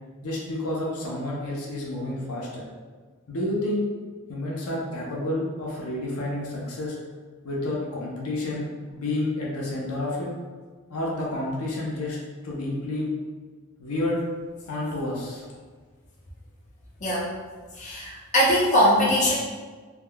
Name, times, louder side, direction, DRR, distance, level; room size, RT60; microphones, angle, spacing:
voice 1, 0.2-2.7 3.3-3.9 4.3-7.0 7.4-10.3 10.9-13.2 13.8-14.2 14.7-15.4, left 1 dB, 75° left, -4 dB, 0.6 m, -30 dB
voice 2, 17.8-19.3, equal, 35° left, -6 dB, 0.6 m, -21 dB
3.5 x 2.2 x 2.2 m, 1.5 s
head